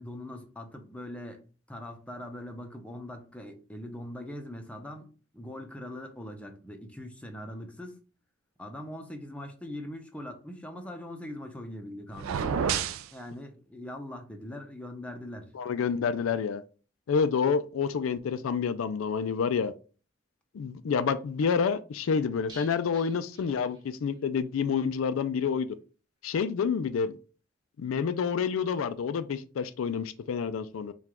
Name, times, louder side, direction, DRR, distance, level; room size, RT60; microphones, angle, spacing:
voice 1, 0.0-1.4 1.7-5.1 5.3-8.0 8.6-15.5, left 1 dB, 5° left, 0.6 m, -41 dB
sound 1, 12.1-13.1, right 7 dB, 90° right, 0.3 m, -29 dB
voice 2, 15.5-16.6 17.1-19.7 20.5-25.7 26.2-27.1 27.8-30.9, left 6 dB, 85° left, 0.4 m, -28 dB
sound 2, 22.5-24.3 24.5-24.6 25.0-25.1, equal, 20° right, 1.0 m, -52 dB
4.7 x 2.3 x 3.5 m
head